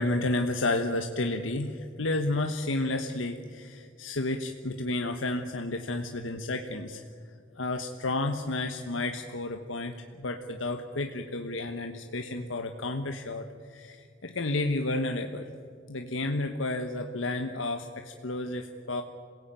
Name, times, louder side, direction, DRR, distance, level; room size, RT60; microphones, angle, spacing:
voice 1, 0.0-7.0 7.5-15.5 15.9-19.0, left 2 dB, 90° left, 5 dB, 1.2 m, -31 dB
27.0 x 17.5 x 9.0 m, 2.3 s
head